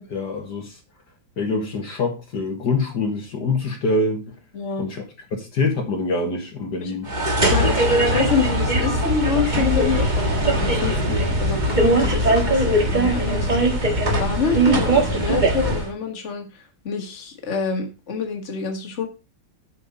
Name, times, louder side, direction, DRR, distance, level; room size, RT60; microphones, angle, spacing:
voice 1, 0.1-0.8 1.4-4.3 4.8-5.0 5.3-7.1 7.4-7.8, left 3 dB, 60° left, 2.0 m, -25 dB
voice 2, 4.5-4.9 6.8-6.9 7.4-13.6 14.2-19.1, left 5 dB, 35° left, 2.0 m, -27 dB
sound 1, 7.1-15.9, right 1 dB, 25° right, 1.6 m, -20 dB
8.3 x 5.8 x 5.3 m
omnidirectional pair, 2.1 m